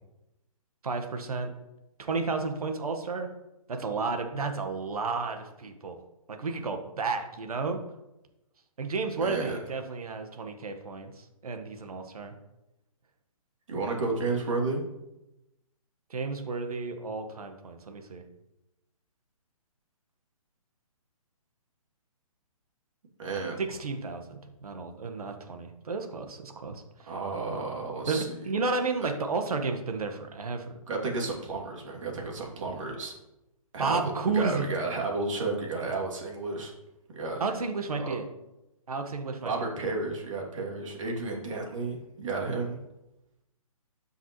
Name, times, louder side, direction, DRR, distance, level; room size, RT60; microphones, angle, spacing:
voice 1, 0.8-1.5 2.0-3.3 3.7-6.0 6.3-7.8 8.8-12.3 16.1-18.2 23.6-27.1 28.1-30.7 33.8-34.7 37.4-38.2 38.9-39.5, right 4 dB, 80° right, 5 dB, 1.5 m, -32 dB
voice 2, 9.2-9.6 13.7-14.8 23.2-23.6 27.1-28.3 29.0-29.1 30.9-33.1 33.7-34.0 34.3-36.7 37.1-37.4 37.9-38.1 39.4-42.8, right 3 dB, 60° right, -1 dB, 2.7 m, -32 dB
12.5 x 5.6 x 3.1 m, 0.94 s
hypercardioid pair, 155°, 19 cm